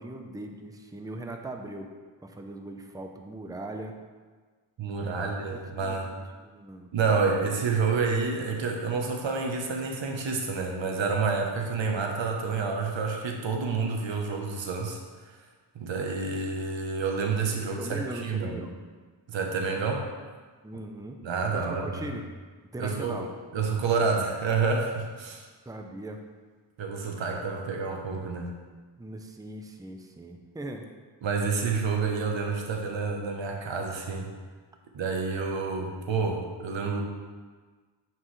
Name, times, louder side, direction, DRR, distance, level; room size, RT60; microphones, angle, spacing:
voice 1, 0.0-1.9 2.2-3.9 4.8-6.9 17.8-18.8 20.6-21.2 21.5-22.2 22.7-23.3 25.7-26.2 29.0-30.8, right 1 dB, 10° right, 4 dB, 0.6 m, -40 dB
voice 2, 4.8-6.1 6.9-15.4 15.7-18.7 19.3-20.0 21.2-22.1 22.8-23.2 23.5-25.4 26.8-28.5 31.2-34.3 34.9-37.0, right 4 dB, 80° right, 1 dB, 1.1 m, -29 dB
9.3 x 4.6 x 3.2 m, 1.4 s
cardioid pair, 75°, 44 cm